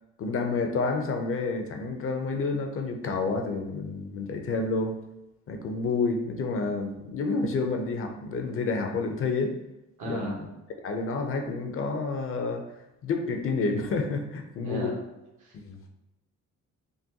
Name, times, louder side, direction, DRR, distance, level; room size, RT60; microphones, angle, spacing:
voice 1, 0.2-5.0 5.5-9.5 10.0-10.5 10.8-12.7 13.0-14.9 15.5-15.8, left 3 dB, 45° left, 5 dB, 0.5 m, -29 dB
voice 2, 10.0-10.4 14.6-14.9 15.4-15.5, right 2 dB, 75° right, -2 dB, 1.0 m, -35 dB
3.8 x 2.2 x 2.7 m, 0.94 s
cardioid pair, 90°, 30 cm